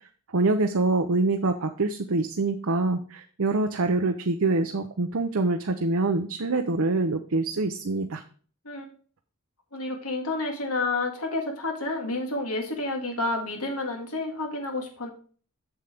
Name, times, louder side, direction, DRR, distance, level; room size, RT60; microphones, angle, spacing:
voice 1, 0.3-8.2, right 3 dB, 65° right, 5 dB, 0.7 m, -25 dB
voice 2, 9.7-15.1, left 2 dB, 80° left, 3 dB, 2.0 m, -30 dB
7.8 x 7.2 x 3.5 m, 0.42 s
head